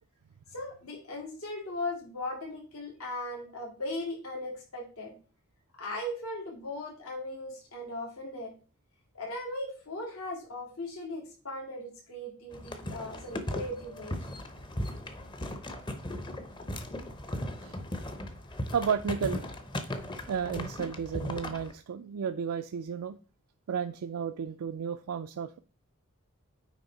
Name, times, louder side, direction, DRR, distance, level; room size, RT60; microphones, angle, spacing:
voice 1, 0.5-5.1 5.8-8.5 9.1-14.2, left 1 dB, 80° left, -2 dB, 2.5 m, -38 dB
sound 1, 12.5-21.7, left 1 dB, 20° left, 0.7 m, -37 dB
voice 2, 18.7-19.5 20.3-23.2 23.7-25.6, right 7 dB, 85° right, 8 dB, 0.4 m, -33 dB
9.3 x 3.4 x 4.0 m, 0.36 s
head